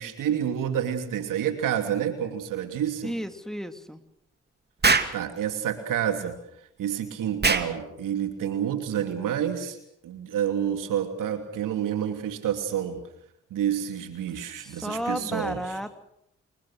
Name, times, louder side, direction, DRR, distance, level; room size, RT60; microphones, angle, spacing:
voice 1, 0.0-3.1 5.1-6.4 6.8-9.8 10.0-13.0 13.5-15.6, right 9 dB, 75° right, 7 dB, 2.9 m, -28 dB
voice 2, 3.0-4.0 14.6-16.0, equal, ahead, 7 dB, 2.9 m, -33 dB
Explosion, 4.8-5.2 7.4-7.7, right 4 dB, 30° right, 2.5 m, -21 dB
29.0 x 21.0 x 6.6 m, 0.75 s
hypercardioid pair, 40°, 32 cm